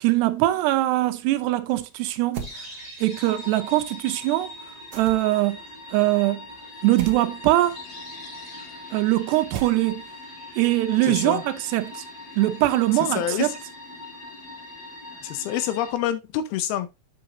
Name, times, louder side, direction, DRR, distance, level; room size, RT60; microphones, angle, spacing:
voice 1, 0.0-2.7 3.0-4.5 4.9-5.6 5.9-6.4 6.8-7.8 8.9-10.0 10.6-11.9 12.4-13.5, right 16 dB, 90° right, 2.9 m, -22 dB
sound 1, 2.3-2.6 4.9-5.4 7.0-7.2 9.5-10.1, right 7 dB, 65° right, 2.0 m, -37 dB
sound 2, 2.4-15.9, left 2 dB, 40° left, 3.9 m, -41 dB
voice 2, 11.0-11.4 12.9-13.6 15.2-16.9, left 11 dB, 80° left, 2.5 m, -27 dB
7.9 x 6.8 x 2.7 m
omnidirectional pair, 4.7 m